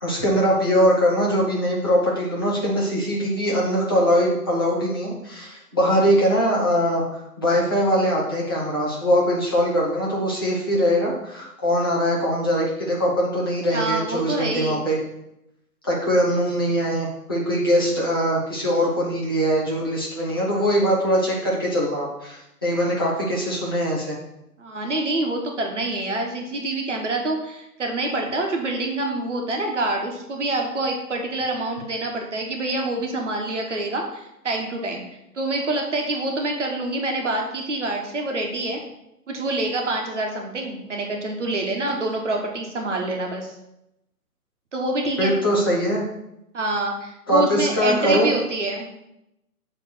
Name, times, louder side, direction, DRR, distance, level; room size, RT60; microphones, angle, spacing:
voice 1, 0.0-15.0 15.8-24.2 45.2-46.0 47.3-48.3, equal, 15° left, -6 dB, 0.8 m, -22 dB
voice 2, 13.7-14.8 24.6-35.0 35.3-38.8 39.3-43.5 44.7-45.3 46.5-48.9, right 2 dB, 50° right, 1 dB, 1.4 m, -26 dB
7.2 x 3.5 x 6.2 m, 0.84 s
hypercardioid pair, 175°, 47 cm